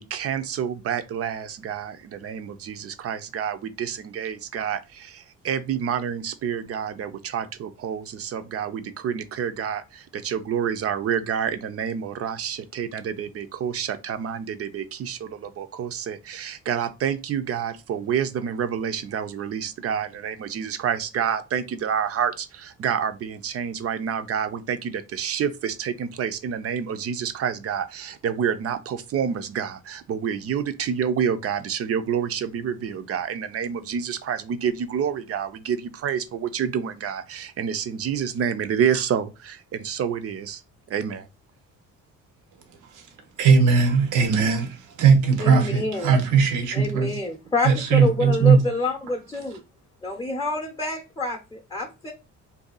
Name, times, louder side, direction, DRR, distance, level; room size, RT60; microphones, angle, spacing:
voice 1, 0.0-40.6 40.9-41.3, right 8 dB, 50° right, 0.5 m, -28 dB
voice 2, 43.4-47.2 47.6-48.6, right 5 dB, 85° right, 0.8 m, -19 dB
voice 3, 45.4-46.1 46.7-49.5 50.0-52.1, left 2 dB, 15° left, 0.6 m, -27 dB
2.6 x 2.3 x 3.8 m
cardioid pair, 90°, 30 cm